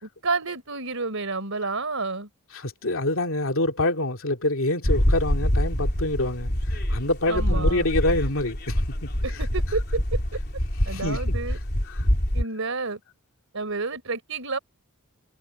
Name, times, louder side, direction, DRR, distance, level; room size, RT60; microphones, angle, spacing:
voice 1, 0.0-2.3 7.3-7.8 9.2-10.4 10.8-11.6 12.3-13.0 13.5-14.6, right 3 dB, 65° right, 4.3 m, -30 dB
voice 2, 2.5-8.8 10.9-11.2 11.9-12.1, left 2 dB, 65° left, 2.7 m, -26 dB
sound 1, 4.8-12.4, equal, 50° left, 3.4 m, -25 dB
head